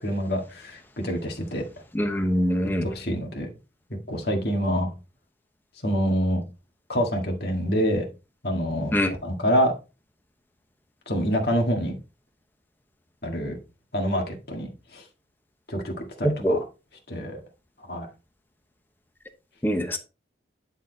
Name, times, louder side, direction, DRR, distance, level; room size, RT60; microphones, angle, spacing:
voice 1, 0.0-1.6 2.8-3.5 4.1-4.9 5.8-6.4 6.9-8.1 8.4-9.7 11.1-12.0 13.2-13.6 13.9-15.0 15.7-16.6 17.1-17.4 17.9-18.1, equal, 60° left, 1 dB, 1.9 m, -26 dB
voice 2, 1.9-2.8 8.9-9.1 16.4-16.6 19.6-20.0, equal, 10° left, 6 dB, 1.0 m, -23 dB
10.0 x 4.2 x 4.0 m, 0.31 s
head